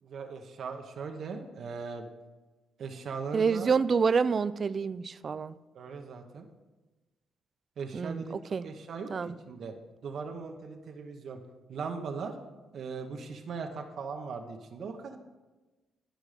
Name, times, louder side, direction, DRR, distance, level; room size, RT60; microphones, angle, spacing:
voice 1, 0.0-2.1 2.8-3.7 5.7-6.5 7.8-8.3 8.6-9.7 10.0-11.4 11.7-12.3 12.7-15.2, right 5 dB, 60° right, 4 dB, 0.8 m, -39 dB
voice 2, 3.3-5.5 7.9-8.2 8.5-8.7 9.1-9.4, right 5 dB, 40° right, 16 dB, 0.3 m, -27 dB
11.5 x 5.1 x 4.9 m, 1.2 s
cardioid pair, 120°, 0 cm